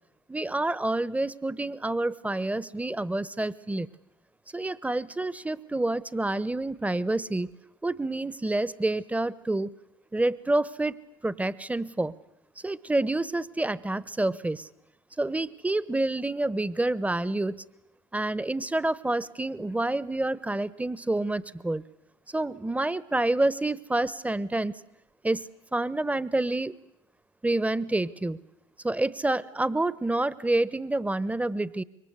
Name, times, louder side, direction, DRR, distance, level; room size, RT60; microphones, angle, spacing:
voice 1, 0.3-3.9 4.5-7.5 7.8-9.7 10.1-10.9 11.2-12.1 12.6-14.7 15.2-17.6 18.1-21.8 22.3-24.7 25.2-26.8 27.4-28.4 28.8-31.8, right 2 dB, 10° right, 19 dB, 1.2 m, -28 dB
26.5 x 23.5 x 8.2 m, 0.84 s
hypercardioid pair, 70°, 17 cm